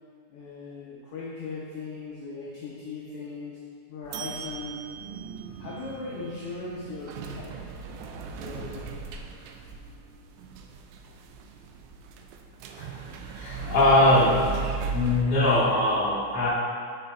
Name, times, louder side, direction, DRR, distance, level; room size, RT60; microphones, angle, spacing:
voice 1, 0.3-3.6 3.9-4.8 5.6-7.7 8.4-8.9, left 3 dB, 70° left, -5 dB, 1.4 m, -38 dB
sound 1, 4.0-15.2, right 5 dB, 85° right, 2.0 m, -37 dB
voice 2, 12.8-14.4 14.9-16.5, left 1 dB, 20° left, -9 dB, 1.4 m, -22 dB
6.7 x 5.6 x 4.2 m, 2.1 s
omnidirectional pair, 3.6 m